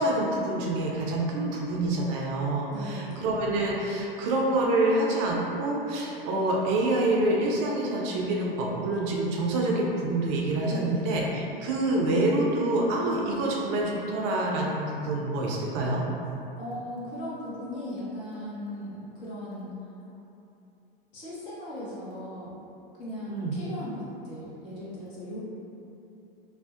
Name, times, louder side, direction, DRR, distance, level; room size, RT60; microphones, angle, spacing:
voice 1, 0.0-16.0 23.3-23.6, right 2 dB, 40° right, -2 dB, 0.4 m, -27 dB
voice 2, 2.7-3.3 10.7-11.1 16.5-19.7 21.1-22.5 23.0-25.4, left 1 dB, 65° left, -8 dB, 0.9 m, -38 dB
2.5 x 2.0 x 2.3 m, 2.8 s
hypercardioid pair, 90°, 29 cm